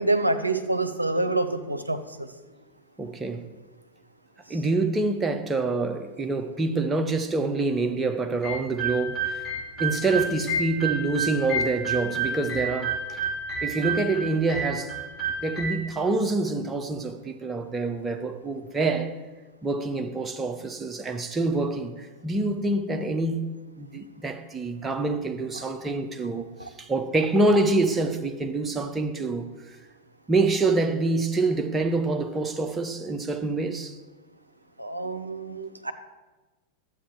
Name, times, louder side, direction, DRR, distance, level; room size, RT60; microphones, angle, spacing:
voice 1, 0.0-2.3 25.5-25.6 34.8-35.9, right 2 dB, 85° right, 0.6 m, -27 dB
voice 2, 3.0-3.5 4.5-9.4 9.8-13.2 13.6-15.0 15.4-19.1 19.6-23.4 23.8-26.5 26.8-29.8 30.3-34.0, right 3 dB, 15° right, 0.7 m, -26 dB
sound 1, 8.4-15.7, right 3 dB, 5° left, 3.0 m, -30 dB
12.0 x 8.0 x 3.2 m
figure-of-eight pair, 90°, 0 cm